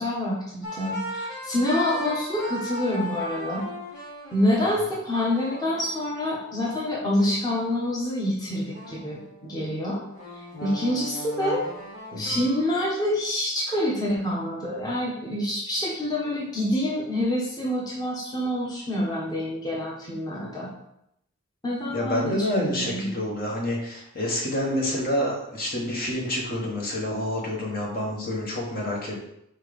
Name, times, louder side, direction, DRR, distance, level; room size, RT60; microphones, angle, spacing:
voice 1, 0.0-3.6 4.3-10.0 10.6-11.6 12.1-20.7 21.6-23.1, left 1 dB, 20° left, -5 dB, 1.2 m, -27 dB
sound 1, 0.6-8.0 8.7-13.2, equal, 85° left, 2.6 m, -38 dB
voice 2, 12.1-12.4 21.9-29.2, left 1 dB, 45° left, -1 dB, 1.4 m, -28 dB
4.6 x 4.5 x 5.1 m, 0.78 s
head